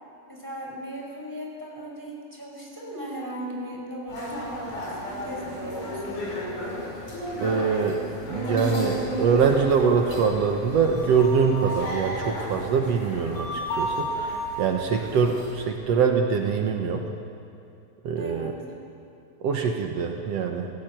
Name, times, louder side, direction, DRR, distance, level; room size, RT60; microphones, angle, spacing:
voice 1, 0.3-6.2 18.2-18.6, equal, 5° right, -1 dB, 4.9 m, -37 dB
sound 1, 4.1-15.6, equal, 50° left, 7.9 m, -32 dB
voice 2, 7.4-8.0 8.3-17.0 18.0-18.5 19.4-20.7, right 6 dB, 85° right, 3 dB, 1.4 m, -24 dB
28.5 x 17.0 x 9.2 m, 2.6 s
omnidirectional pair, 4.8 m